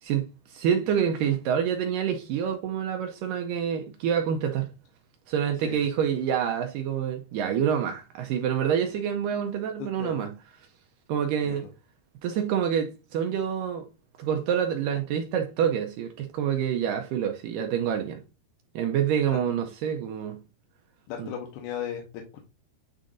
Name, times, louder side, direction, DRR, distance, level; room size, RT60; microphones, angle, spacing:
voice 1, 0.0-4.7 5.3-10.3 11.1-11.7 12.2-13.9 14.2-18.2 18.8-20.4 21.2-21.3, right 8 dB, 85° right, 1.9 m, -27 dB
voice 2, 9.8-10.3 11.4-11.7 19.3-19.4 21.1-22.5, left 8 dB, 85° left, 2.9 m, -36 dB
9.8 x 3.6 x 2.6 m
omnidirectional pair, 4.5 m